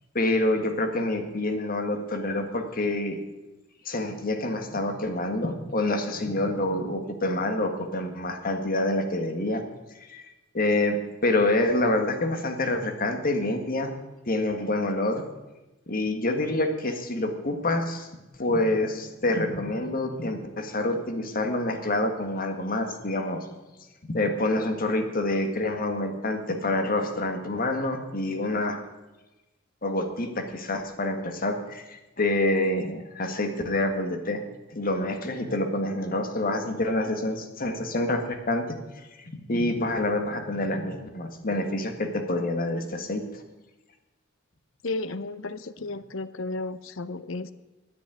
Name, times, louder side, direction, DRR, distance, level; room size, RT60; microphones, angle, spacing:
voice 1, 0.1-3.2 3.8-9.6 10.0-10.3 10.5-13.9 14.3-15.2 15.9-18.1 18.4-23.4 24.1-28.8 29.8-34.4 34.7-39.1 39.5-43.2, left 2 dB, 45° left, 6 dB, 1.7 m, -27 dB
voice 2, 44.8-47.5, left 2 dB, 70° left, 14 dB, 0.8 m, -33 dB
9.9 x 9.8 x 9.1 m, 1.1 s
head